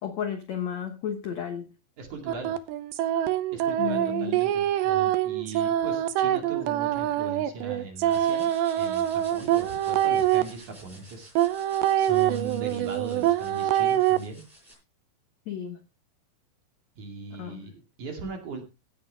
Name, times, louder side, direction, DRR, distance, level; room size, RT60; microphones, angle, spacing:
voice 1, 0.0-1.7 3.8-4.4 15.5-15.8 17.3-17.7, left 9 dB, 80° left, 6 dB, 1.5 m, -33 dB
voice 2, 2.0-2.5 3.5-8.5 8.7-11.3 12.0-14.4 17.0-18.6, right 3 dB, 50° right, 3 dB, 3.4 m, -39 dB
sound 1, 2.3-10.4 11.4-14.2, right 12 dB, 80° right, 3.0 m, -25 dB
sound 2, 8.1-14.7, equal, ahead, 7.3 m, -52 dB
16.5 x 8.6 x 3.5 m, 0.28 s
omnidirectional pair, 5.1 m